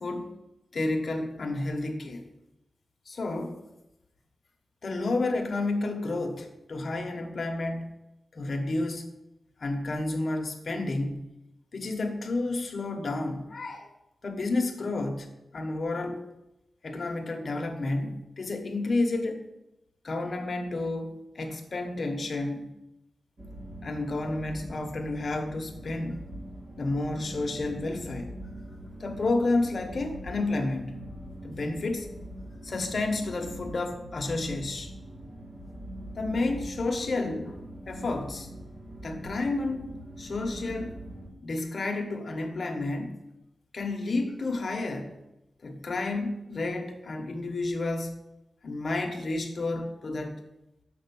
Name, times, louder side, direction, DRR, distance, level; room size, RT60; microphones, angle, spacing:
voice 1, 0.0-0.3 0.7-2.2 3.1-3.6 4.8-7.9 8.3-9.1 9.6-11.2 11.7-13.9 14.2-15.3 15.5-16.2 16.8-19.5 20.0-22.7 23.8-26.2 26.8-28.3 29.0-31.0 31.4-32.1 32.6-34.9 36.1-37.6 37.9-38.5 39.0-39.9 40.2-41.0 41.4-43.1 43.7-45.1 45.6-48.2 48.6-50.4, left 2 dB, 40° left, 4 dB, 1.1 m, -30 dB
sound 1, 23.4-41.3, right 1 dB, 25° right, 1.6 m, -43 dB
6.8 x 5.3 x 7.0 m, 0.91 s
wide cardioid pair, 170°, 0 cm